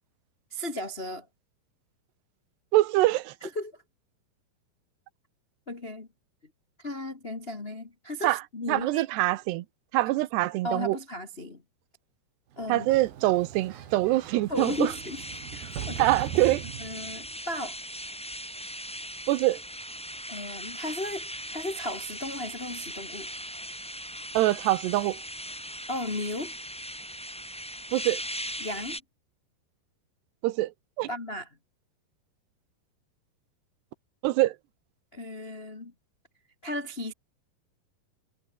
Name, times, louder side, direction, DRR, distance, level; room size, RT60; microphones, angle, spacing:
voice 1, 0.5-1.3 3.4-3.7 5.7-6.1 6.8-9.1 10.6-11.6 12.6-12.9 14.5-15.2 15.5-16.1 16.8-17.8 20.3-23.3 25.9-26.5 28.6-29.0 31.1-31.5 35.1-35.9 36.6-37.1, left 1 dB, 85° left, 0.5 m, -35 dB
voice 2, 2.7-3.3 8.2-8.4 8.7-9.6 9.9-11.0 12.7-14.9 16.0-16.6 19.3-19.6 24.3-25.2 27.9-28.2 30.4-30.7 31.0-31.1 34.2-34.5, right 17 dB, 85° right, 3.0 m, -24 dB
Sliding door, 12.6-17.3, right 10 dB, 65° right, 3.9 m, -40 dB
sound 1, 14.5-29.0, equal, ahead, 5.6 m, -39 dB
omnidirectional pair, 4.7 m